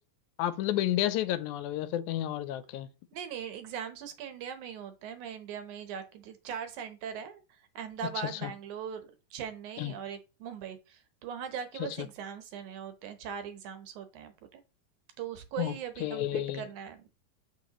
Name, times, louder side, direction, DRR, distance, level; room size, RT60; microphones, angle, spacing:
voice 1, 0.4-2.9 8.4-8.5 9.8-9.9 11.8-12.1 15.6-15.7 16.0-16.6, left 13 dB, 80° left, 1.9 m, -31 dB
voice 2, 3.1-14.6 15.2-17.0, right 8 dB, 75° right, 2.4 m, -40 dB
7.0 x 6.5 x 3.0 m
omnidirectional pair, 3.5 m